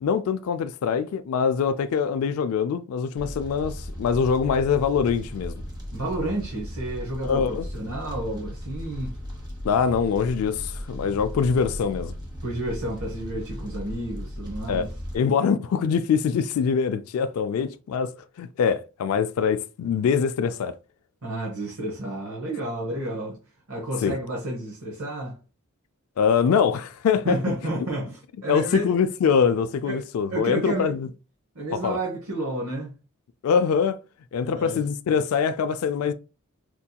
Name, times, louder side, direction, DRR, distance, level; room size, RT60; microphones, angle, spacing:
voice 1, 0.0-5.6 7.2-7.7 9.6-12.1 14.7-14.9 15.1-18.1 18.4-20.7 24.0-24.2 26.2-27.4 28.5-31.1 31.8-32.0 33.4-34.0 34.3-36.1, left 6 dB, 80° left, 0.3 m, -23 dB
Fire, 3.2-15.2, equal, 20° right, 1.0 m, -36 dB
voice 2, 5.9-9.1 11.1-11.2 12.4-14.9 21.2-23.4 23.7-25.4 27.2-28.9 29.8-30.0 30.3-30.9 31.5-32.9 34.4-34.8, right 1 dB, 80° right, 1.0 m, -31 dB
4.4 x 2.8 x 2.2 m
head